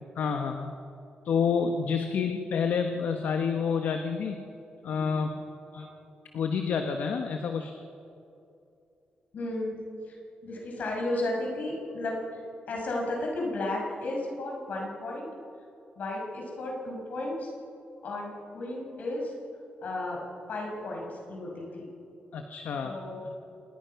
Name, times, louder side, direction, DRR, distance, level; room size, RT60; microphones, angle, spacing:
voice 1, 0.2-0.7 1.2-4.5 4.8-5.3 6.3-7.7 22.3-22.9, left 6 dB, 75° left, 5 dB, 1.3 m, -28 dB
voice 2, 9.3-9.8 10.1-10.2 10.4-12.4 12.7-15.3 16.0-17.5 18.0-19.3 19.8-20.2 20.5-21.9 22.8-23.2, left 2 dB, 60° left, -1 dB, 6.5 m, -33 dB
27.0 x 21.0 x 5.9 m, 2.6 s
wide cardioid pair, 160°, 3 cm